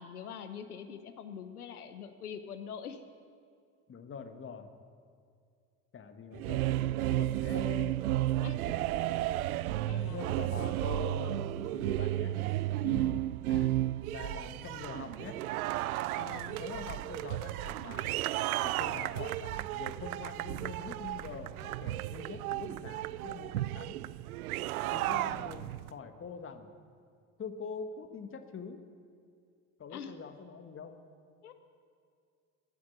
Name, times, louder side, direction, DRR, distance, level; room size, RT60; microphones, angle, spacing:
voice 1, 0.0-3.0 8.4-8.8 9.9-10.4 12.8-13.2 16.2-16.6 29.9-30.1 31.4-31.5, left 7 dB, 80° left, 9 dB, 0.9 m, -43 dB
voice 2, 3.9-4.7 5.9-8.1 10.0-11.4 11.7-12.4 13.5-13.7 14.1-15.4 16.4-18.2 18.6-24.0 24.9-26.7 27.4-28.8 29.8-31.0, left 5 dB, 30° left, 7 dB, 1.5 m, -44 dB
sound 1, 6.3-25.9, right 15 dB, 75° right, 0.5 m, -33 dB
13.0 x 9.5 x 9.6 m, 2.3 s
figure-of-eight pair, 60°, 44 cm